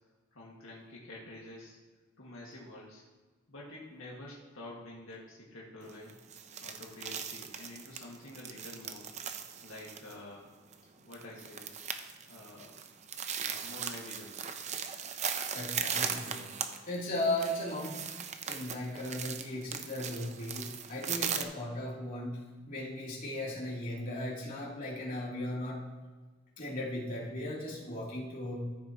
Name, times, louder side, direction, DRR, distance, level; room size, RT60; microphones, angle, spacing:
voice 1, 0.3-1.8 2.2-3.0 3.5-6.2 6.6-10.5 11.1-11.7 12.3-12.7 13.4-14.4, left 1 dB, 80° left, -4 dB, 1.9 m, -48 dB
sound 1, 5.9-21.4, right 7 dB, 35° right, 0.6 m, -38 dB
voice 2, 15.5-18.0 18.5-22.4 22.7-25.8 26.6-28.6, left 1 dB, 45° left, -6 dB, 3.0 m, -37 dB
14.0 x 6.7 x 3.0 m, 1.4 s
head